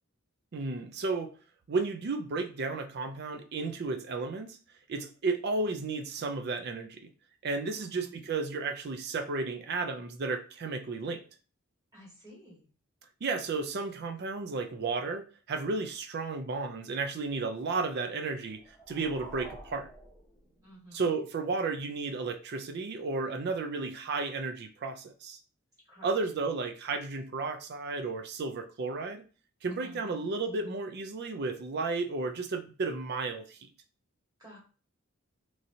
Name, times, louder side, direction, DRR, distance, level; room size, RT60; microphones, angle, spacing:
voice 1, 0.5-1.3 1.7-4.6 4.9-7.0 7.4-11.2 13.2-19.9 20.9-25.4 26.0-29.2 29.6-33.7, right 3 dB, 50° right, 7 dB, 0.4 m, -33 dB
voice 2, 7.7-8.2 11.9-12.7 20.6-21.1 25.9-26.1 29.7-30.3 34.4-34.6, equal, 15° right, -6 dB, 1.5 m, -52 dB
sound 1, 18.4-21.0, equal, ahead, 1.0 m, -50 dB
3.1 x 2.7 x 2.7 m, 0.37 s
head